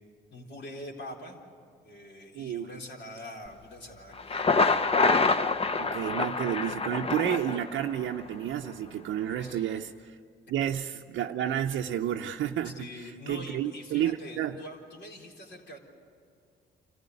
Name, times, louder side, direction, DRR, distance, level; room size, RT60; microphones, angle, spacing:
voice 1, 0.3-1.4 1.8-4.5 9.4-9.7 12.6-15.8, left 1 dB, 65° left, 1 dB, 4.0 m, -44 dB
voice 2, 2.3-2.7 5.8-10.2 10.5-14.6, right 10 dB, 75° right, 3 dB, 0.6 m, -31 dB
Thunder, 4.1-8.1, left 3 dB, 30° left, 0.8 m, -26 dB
26.5 x 15.0 x 9.4 m, 2.2 s
cardioid pair, 90°, 20 cm